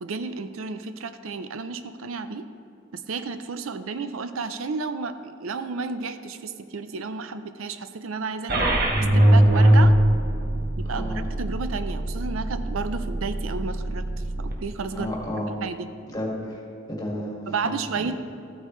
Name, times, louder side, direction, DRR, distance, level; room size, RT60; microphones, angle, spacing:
voice 1, 0.0-2.5 2.9-8.7 9.1-9.9 10.8-14.0 14.4-15.1 15.6-15.9 17.5-18.1, right 4 dB, 85° right, 10 dB, 0.5 m, -32 dB
sound 1, 8.5-14.5, right 1 dB, 50° right, 1.2 m, -21 dB
voice 2, 10.9-11.3 15.0-15.5 16.1-16.6 16.9-17.8, equal, 20° left, -3 dB, 2.0 m, -32 dB
13.5 x 8.8 x 3.1 m, 2.6 s
head